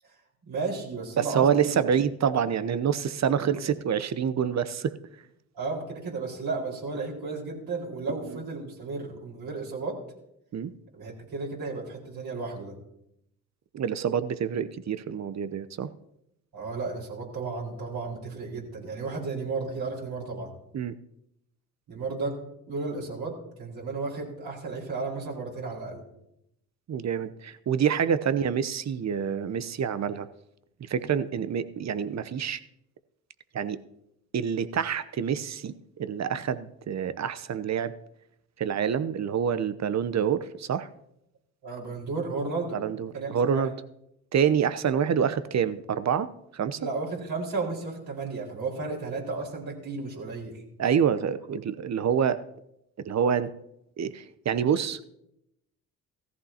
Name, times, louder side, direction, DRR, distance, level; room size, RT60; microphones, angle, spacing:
voice 1, 0.5-1.9 3.4-3.6 5.5-10.0 10.9-12.7 16.5-20.5 21.9-22.4 22.7-26.0 41.6-42.8 43.1-43.7 46.8-50.6, right 3 dB, 55° right, -3 dB, 4.7 m, -33 dB
voice 2, 1.2-5.0 10.5-10.7 13.7-15.9 20.7-20.9 26.9-30.3 30.9-32.6 33.5-33.8 34.3-35.7 36.0-37.9 38.6-40.9 42.7-43.7 44.3-46.8 50.8-52.4 53.0-53.5 54.0-55.0, right 7 dB, 40° right, 14 dB, 0.9 m, -27 dB
16.5 x 14.5 x 2.9 m, 0.80 s
hypercardioid pair, 50°, 44 cm